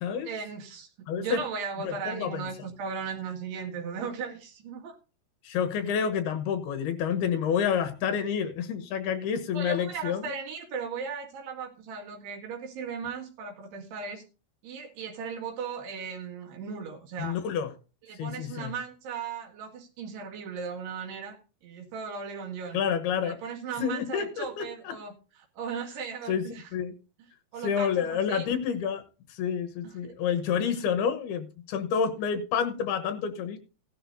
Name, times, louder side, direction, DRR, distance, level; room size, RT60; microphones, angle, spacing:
voice 1, 0.3-0.9 1.1-5.0 9.5-14.2 14.6-17.4 18.1-21.4 21.6-22.8 23.2-26.7 27.5-28.5 29.8-29.9, right 6 dB, 85° right, 2 dB, 4.2 m, -37 dB
voice 2, 1.1-1.4 1.8-2.5 5.4-10.3 17.2-17.7 18.2-18.7 22.7-23.4 23.8-24.9 26.3-26.4 26.7-26.9 27.6-29.0 29.3-33.6, left 7 dB, 75° left, 7 dB, 3.1 m, -29 dB
16.5 x 11.0 x 2.7 m, 0.34 s
omnidirectional pair, 4.6 m